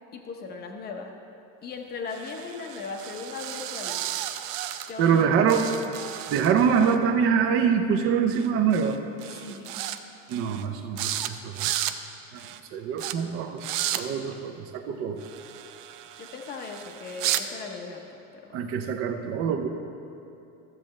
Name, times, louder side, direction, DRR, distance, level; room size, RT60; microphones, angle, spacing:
voice 1, 0.1-1.1 1.6-4.0 4.9-5.5 9.2-9.8 16.2-18.6, left 4 dB, 20° left, 3 dB, 0.7 m, -38 dB
sound 1, 2.1-5.2 5.5-7.0 8.3-8.5 8.7-9.0 9.2-10.0 10.3-10.7 11.0-11.3 11.5-12.0 12.4-12.6 13.0-13.1 13.6-14.0 15.2-17.4, right 13 dB, 90° right, 0.7 m, -33 dB
voice 2, 5.0-5.7 6.3-9.0 10.3-11.7 12.7-13.6 13.9-15.2 18.5-19.7, right 7 dB, 30° right, 6 dB, 0.5 m, -24 dB
14.0 x 7.5 x 3.1 m, 2.9 s
supercardioid pair, 155°, 46 cm